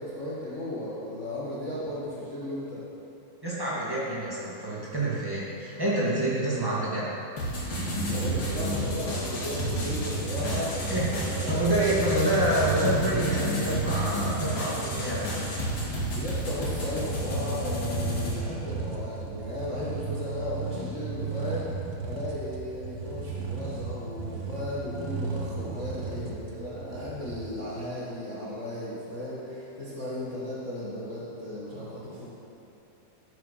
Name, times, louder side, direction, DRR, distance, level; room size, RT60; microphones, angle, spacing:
voice 1, 0.0-2.8 8.0-11.7 16.1-32.2, left 1 dB, 55° left, -8 dB, 0.8 m, -35 dB
voice 2, 3.4-7.1 10.4-10.6 10.9-15.4, right 1 dB, 15° right, -8 dB, 0.9 m, -27 dB
sound 1, 7.4-18.3, left 1 dB, 40° left, 2.7 m, -32 dB
sound 2, 7.7-27.5, right 4 dB, 70° right, 2.4 m, -34 dB
13.0 x 7.7 x 5.7 m, 2.9 s
omnidirectional pair, 4.4 m